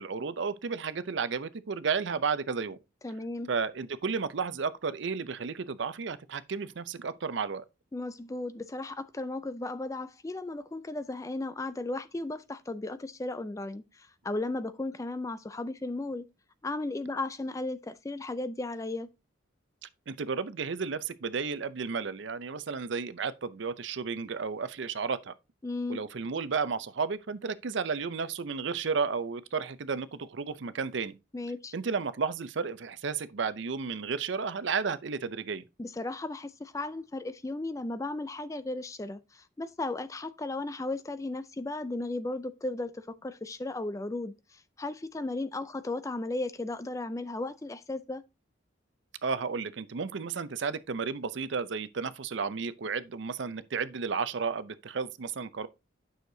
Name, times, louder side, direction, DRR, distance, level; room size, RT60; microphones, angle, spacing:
voice 1, 0.0-2.8 3.5-7.6 20.1-25.3 25.9-31.1 31.7-35.6 49.2-55.7, right 5 dB, 65° right, 0.5 m, -33 dB
voice 2, 3.0-3.5 7.9-16.3 16.6-19.1 25.6-26.0 31.3-31.7 35.8-48.2, left 2 dB, 15° left, 0.3 m, -35 dB
9.3 x 6.4 x 2.7 m
head